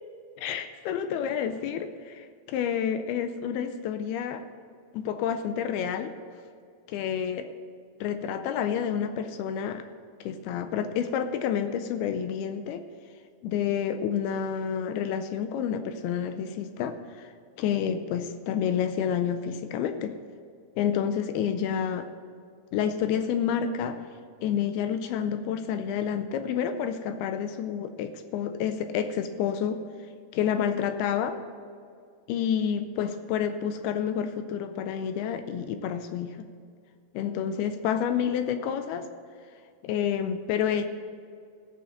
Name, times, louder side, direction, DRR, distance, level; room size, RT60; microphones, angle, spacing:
voice 1, 0.4-4.4 4.9-6.1 6.9-7.5 8.0-9.8 10.2-12.8 13.4-17.3 17.6-20.2 20.8-22.1 22.7-24.0 24.4-29.8 30.3-31.4 32.3-36.5 37.1-39.1 39.8-40.8, left 8 dB, 80° left, 9 dB, 2.4 m, -29 dB
15.0 x 6.9 x 6.4 m, 2.3 s
omnidirectional pair, 4.8 m